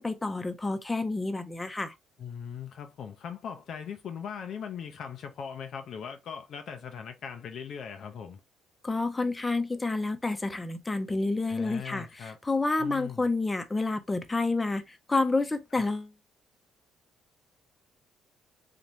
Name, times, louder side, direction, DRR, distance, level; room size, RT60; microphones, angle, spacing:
voice 1, 0.0-1.9 8.8-16.1, left 3 dB, 20° left, 0.7 m, -29 dB
voice 2, 2.2-8.4 11.5-12.4 12.8-13.3 15.7-15.8, left 7 dB, 55° left, 0.5 m, -40 dB
4.2 x 2.5 x 2.9 m
figure-of-eight pair, 45°, 0 cm